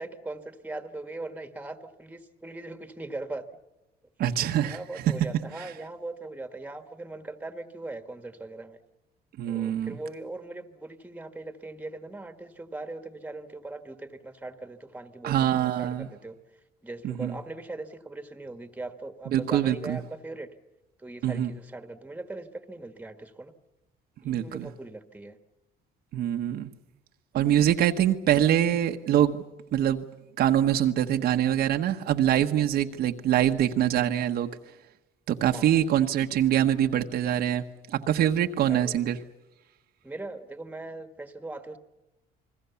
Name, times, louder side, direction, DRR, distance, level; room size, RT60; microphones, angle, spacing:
voice 1, 0.0-3.5 4.6-8.8 9.4-16.4 16.8-20.5 21.0-23.5 24.2-25.4 35.5-35.7 38.7-39.0 40.0-41.8, right 2 dB, 10° right, 8 dB, 1.6 m, -40 dB
voice 2, 4.2-5.1 5.6-5.7 9.4-10.0 15.2-16.1 17.0-17.4 19.3-20.0 21.2-21.5 24.2-24.7 26.1-26.7 27.3-29.4 29.7-30.0 30.4-34.5 35.3-39.2, right 11 dB, 70° right, 5 dB, 1.2 m, -24 dB
29.0 x 21.0 x 7.1 m, 0.98 s
cardioid pair, 110°, 17 cm